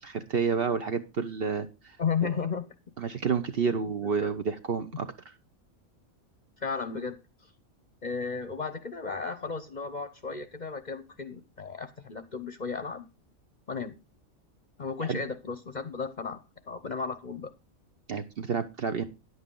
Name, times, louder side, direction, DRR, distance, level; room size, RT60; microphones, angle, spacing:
voice 1, 0.0-2.0 3.0-5.1 15.1-15.2 18.1-19.0, right 5 dB, 50° right, 9 dB, 0.9 m, -29 dB
voice 2, 2.0-2.7 4.2-4.3 6.6-7.5 8.0-13.1 13.7-14.0 14.8-16.4 16.7-17.5, left 5 dB, 40° left, 11 dB, 0.8 m, -34 dB
10.0 x 8.1 x 3.8 m, 0.27 s
omnidirectional pair, 1.4 m